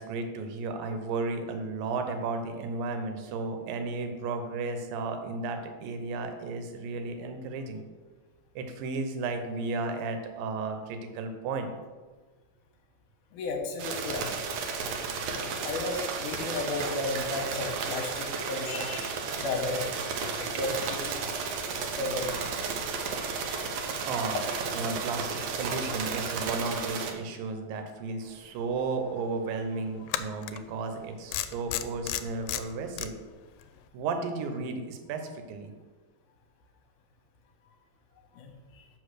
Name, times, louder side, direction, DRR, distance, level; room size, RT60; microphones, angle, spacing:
voice 1, 0.0-7.8 8.6-11.7 24.1-24.4 24.7-33.1 33.9-35.7, right 3 dB, 85° right, 6 dB, 2.6 m, -34 dB
voice 2, 13.3-14.3 15.3-21.3 22.0-22.4 23.3-23.7 38.3-38.9, left 2 dB, 70° left, 3 dB, 2.5 m, -34 dB
sound 1, 13.8-27.1, right 5 dB, 70° right, 1.7 m, -33 dB
sound 2, 28.7-28.8 30.1-30.6 31.3-33.1, left 13 dB, 90° left, 2.3 m, -32 dB
6.5 x 5.5 x 6.3 m, 1.3 s
omnidirectional pair, 3.9 m